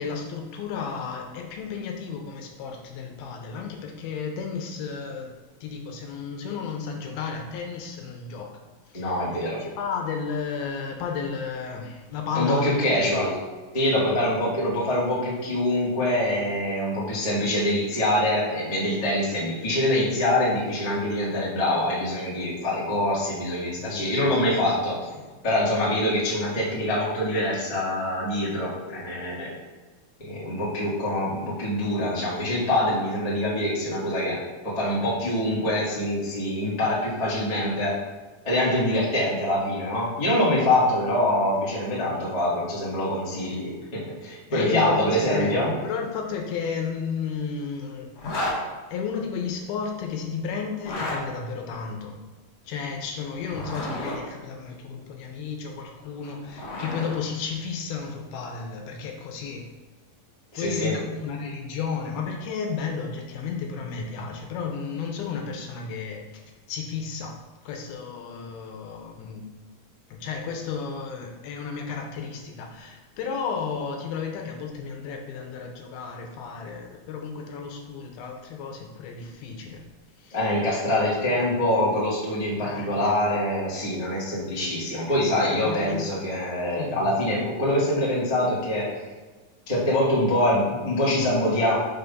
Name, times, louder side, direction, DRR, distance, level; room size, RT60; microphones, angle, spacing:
voice 1, 0.0-5.3 5.6-8.5 8.9-9.2 9.5-13.2 23.8-24.4 24.7-24.8 25.1-25.3 44.5-48.1 48.9-52.2 52.7-59.7 60.6-66.2 66.7-69.4 70.1-79.8 80.2-80.4 82.6-83.1 85.6-86.0 86.7-87.1, left 5 dB, 85° left, 2 dB, 2.7 m, -33 dB
voice 2, 8.9-9.7 12.3-13.4 13.7-25.0 25.4-29.5 30.2-38.0 38.4-45.7 60.5-61.0 80.3-88.9 89.7-91.7, left 1 dB, 25° left, -8 dB, 0.8 m, -24 dB
Zipper (clothing), 48.2-48.6 50.7-51.2 53.3-54.2 56.1-57.2, left 1 dB, 50° left, 2.5 m, -31 dB
6.2 x 3.5 x 5.4 m, 1.3 s
omnidirectional pair, 4.3 m